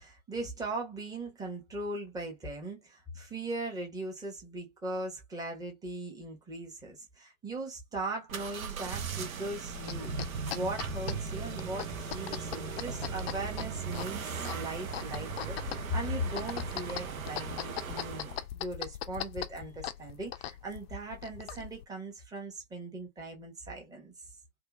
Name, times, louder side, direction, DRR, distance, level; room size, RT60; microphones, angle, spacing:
voice 1, 0.0-10.1 10.5-24.2, right 1 dB, 10° right, 0.9 m, -39 dB
sound 1, 8.3-18.5, right 6 dB, 80° right, 0.6 m, -38 dB
sound 2, 9.7-21.9, left 11 dB, 50° left, 0.4 m, -41 dB
2.7 x 2.2 x 2.3 m
figure-of-eight pair, 100°, 41 cm